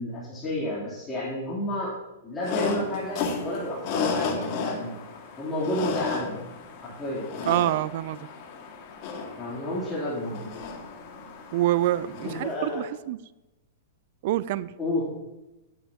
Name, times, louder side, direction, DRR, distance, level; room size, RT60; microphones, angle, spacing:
voice 1, 0.0-1.9 2.2-4.9 5.4-6.4 6.8-7.2 9.4-10.5 12.2-12.8 14.8-15.1, left 1 dB, 15° left, -9 dB, 3.2 m, -31 dB
sound 1, 2.4-12.7, left 4 dB, 45° left, 2.0 m, -33 dB
voice 2, 7.5-8.3 11.5-13.2 14.2-14.7, right 14 dB, 55° right, 18 dB, 0.4 m, -26 dB
11.0 x 8.4 x 2.9 m, 0.99 s
hypercardioid pair, 115°, 0 cm